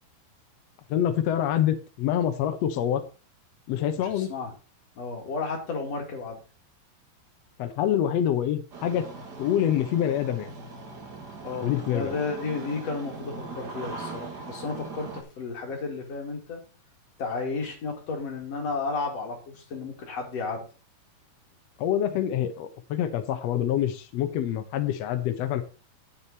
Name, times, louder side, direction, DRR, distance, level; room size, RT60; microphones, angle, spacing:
voice 1, 0.9-3.0 3.7-4.3 7.6-9.1 9.4-10.5 11.6-12.2 21.8-25.6, left 10 dB, 90° left, 8 dB, 1.4 m, -26 dB
voice 2, 4.0-4.5 5.0-6.4 11.4-16.6 17.2-20.7, left 4 dB, 45° left, 0 dB, 3.2 m, -33 dB
Engine starting, 8.7-15.2, right 3 dB, 45° right, 1.3 m, -40 dB
9.2 x 8.5 x 4.1 m, 0.35 s
omnidirectional pair, 4.3 m